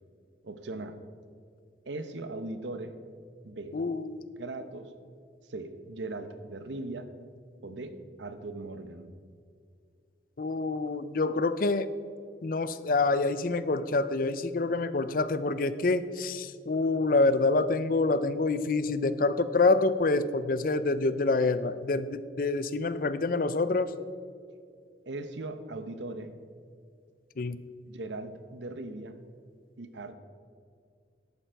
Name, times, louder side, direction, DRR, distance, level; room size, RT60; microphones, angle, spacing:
voice 1, 0.4-1.0 1.9-2.9 3.4-3.8 4.4-4.9 5.4-7.1 7.6-9.1 21.7-21.8 25.1-26.3 27.9-29.2 29.8-30.1, right 2 dB, 85° right, 10 dB, 0.8 m, -39 dB
voice 2, 3.7-4.2 10.4-11.9 12.4-23.9 27.4-27.6, left 3 dB, 50° left, 14 dB, 0.5 m, -27 dB
11.5 x 8.7 x 4.6 m, 2.3 s
head